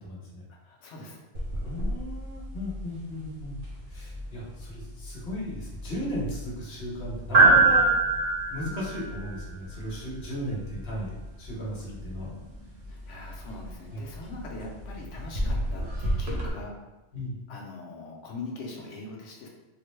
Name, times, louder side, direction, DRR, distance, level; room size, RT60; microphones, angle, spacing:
voice 1, 0.0-0.4 1.6-3.6 3.9-7.9 8.5-12.4 13.9-14.0 17.1-17.4, equal, 60° left, -5 dB, 1.2 m, -36 dB
voice 2, 0.6-1.2 12.9-16.8 17.5-19.5, left 2 dB, 75° left, -2 dB, 1.0 m, -41 dB
sound 1, 1.3-16.5, right 3 dB, 50° right, 0.8 m, -28 dB
3.6 x 2.1 x 3.1 m, 1.1 s
omnidirectional pair, 1.2 m